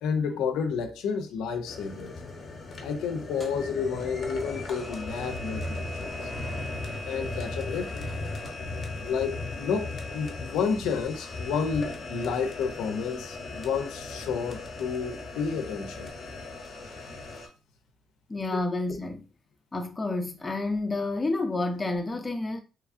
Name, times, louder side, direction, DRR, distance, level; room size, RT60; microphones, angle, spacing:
voice 1, 0.0-2.2 2.8-6.3 7.1-8.1 9.0-16.1, left 6 dB, 90° left, 0.4 m, -30 dB
sound 1, 1.7-17.5, left 2 dB, 45° left, 0.9 m, -37 dB
sound 2, 3.2-9.3, right 1 dB, 15° right, 1.3 m, -52 dB
voice 2, 18.3-19.3 19.7-22.6, left 2 dB, 20° left, 0.5 m, -29 dB
2.9 x 2.4 x 2.5 m
cardioid pair, 90°, 0 cm